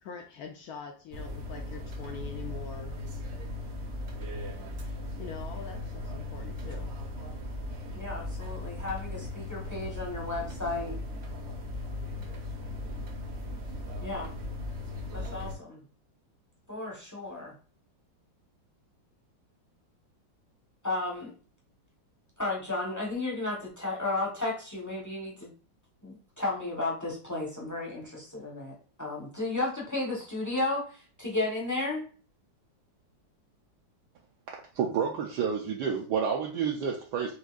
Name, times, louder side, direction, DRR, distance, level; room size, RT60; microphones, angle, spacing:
voice 1, 0.0-3.0 5.2-6.9, left 5 dB, 70° left, 4 dB, 0.9 m, -43 dB
sound 1, 1.1-15.5, left 2 dB, 50° right, 0.8 m, -38 dB
voice 2, 7.9-10.9 14.0-14.3 15.1-15.8 16.7-17.5 20.8-21.3 22.4-25.5 26.0-32.0, left 2 dB, 15° left, -2 dB, 0.6 m, -33 dB
voice 3, 34.7-37.4, right 7 dB, 70° right, 0 dB, 1.1 m, -29 dB
6.2 x 2.6 x 2.4 m, 0.39 s
omnidirectional pair, 2.0 m